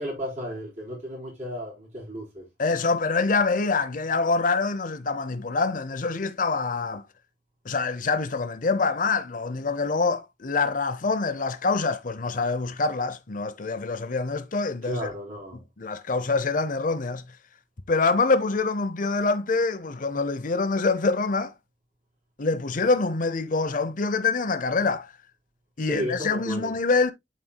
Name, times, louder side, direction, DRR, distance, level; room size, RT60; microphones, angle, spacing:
voice 1, 0.0-2.4 14.8-15.6 25.9-26.7, equal, 40° right, 3.8 m, -34 dB
voice 2, 2.6-7.0 7.6-15.1 15.8-17.2 17.9-21.5 22.4-25.1 25.8-27.1, left 4 dB, 50° left, 0.7 m, -25 dB
11.0 x 4.2 x 2.3 m
head